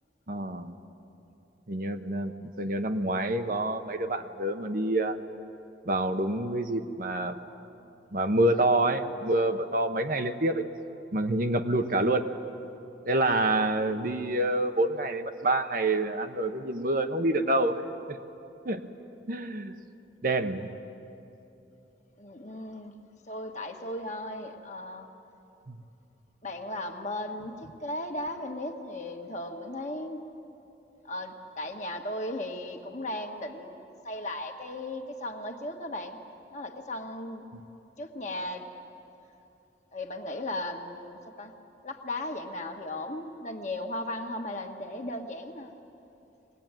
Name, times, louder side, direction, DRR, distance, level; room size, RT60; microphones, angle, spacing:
voice 1, 0.3-0.8 1.7-5.2 5.8-7.4 8.1-10.6 11.1-12.3 13.0-17.8 18.1-18.2 18.6-18.8 19.3-19.8 20.2-20.7 25.7-25.8 37.5-37.6, right 1 dB, 50° right, 7 dB, 1.0 m, -27 dB
voice 2, 22.2-22.9 23.3-25.1 26.4-30.2 31.0-36.2 36.5-37.4 38.0-38.7 39.9-41.5 41.8-45.7, left 1 dB, 40° left, 3 dB, 1.6 m, -36 dB
23.0 x 19.0 x 9.0 m, 2.9 s
head